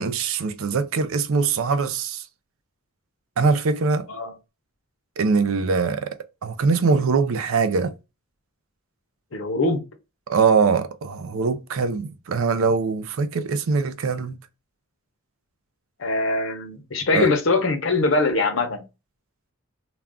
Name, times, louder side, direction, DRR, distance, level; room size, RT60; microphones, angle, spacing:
voice 1, 0.0-2.2 3.4-4.1 5.2-6.2 6.4-7.9 10.3-14.4 17.1-17.3, right 4 dB, 75° right, 0.4 m, -22 dB
voice 2, 9.3-9.8 16.0-18.8, left 3 dB, 65° left, 0.7 m, -22 dB
2.4 x 2.2 x 3.5 m
head